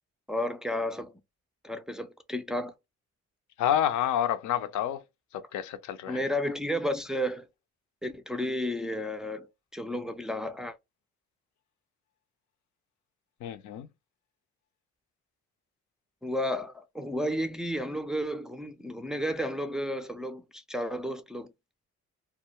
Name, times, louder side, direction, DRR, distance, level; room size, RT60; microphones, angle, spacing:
voice 1, 0.3-1.1 1.6-2.7 6.1-7.5 8.0-9.5 9.7-10.8 16.2-21.5, equal, ahead, 0.3 m, -32 dB
voice 2, 3.6-5.0 5.3-6.2 13.4-13.9, left 10 dB, 75° left, 0.5 m, -29 dB
2.2 x 2.0 x 2.9 m
cardioid pair, 90°, 30 cm